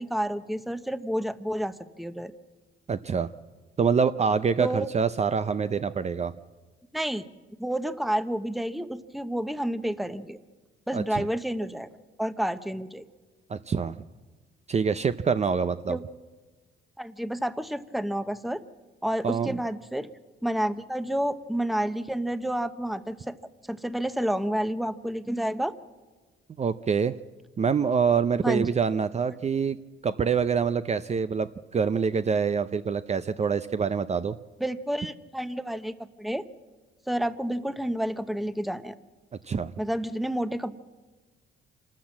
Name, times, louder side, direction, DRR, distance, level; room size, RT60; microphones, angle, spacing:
voice 1, 0.0-2.3 4.6-4.9 6.9-7.2 7.6-10.4 10.9-11.9 12.2-13.1 15.9-16.0 17.0-18.6 19.0-20.1 20.4-23.4 23.7-25.7 28.4-28.7 34.6-35.9 36.2-36.4 37.1-38.9 39.8-40.7, right 1 dB, ahead, 12 dB, 0.9 m, -29 dB
voice 2, 2.9-3.3 3.8-6.3 10.9-11.3 13.5-14.0 14.7-16.0 19.2-19.6 26.6-27.2 27.6-34.4 39.5-39.7, right 6 dB, 35° right, 12 dB, 0.6 m, -26 dB
26.5 x 13.5 x 7.5 m, 1.3 s
cardioid pair, 90°, 20 cm